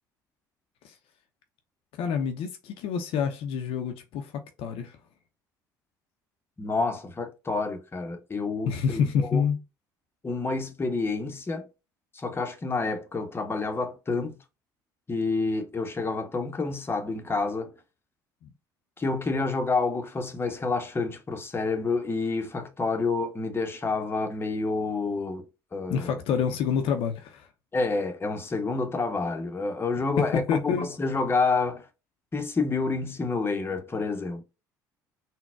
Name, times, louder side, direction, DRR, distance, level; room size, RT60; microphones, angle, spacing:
voice 1, 2.0-5.0 8.7-9.6 18.4-18.5 25.9-27.5 30.2-30.9, left 7 dB, 60° left, 0.5 m, -27 dB
voice 2, 6.6-9.4 10.2-11.7 12.1-14.4 15.1-17.7 19.0-25.4 25.7-26.2 27.7-31.9 32.3-34.4, left 3 dB, 20° left, 0.7 m, -28 dB
3.8 x 2.1 x 2.3 m
hypercardioid pair, 60°, 11 cm